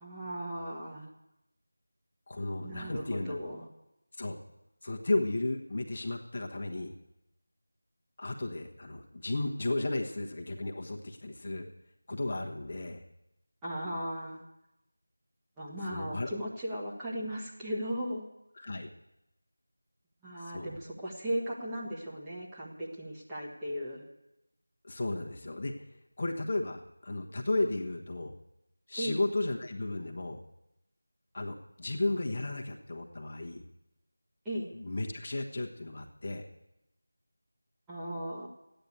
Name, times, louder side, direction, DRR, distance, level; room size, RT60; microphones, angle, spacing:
voice 1, 0.0-1.1 2.6-3.7 13.6-14.4 15.6-18.3 20.2-24.1 29.0-29.2 34.4-34.7 37.9-38.5, equal, 5° right, -7 dB, 1.5 m, -37 dB
voice 2, 2.3-3.4 4.2-4.4 4.8-6.9 8.2-11.7 12.1-13.0 15.9-16.3 18.6-18.9 20.4-20.8 24.8-25.7 26.2-28.3 28.9-30.4 31.3-33.6 34.7-36.4, left 2 dB, 40° left, 1 dB, 1.3 m, -34 dB
13.0 x 9.1 x 8.4 m, 0.91 s
figure-of-eight pair, 170°, 0 cm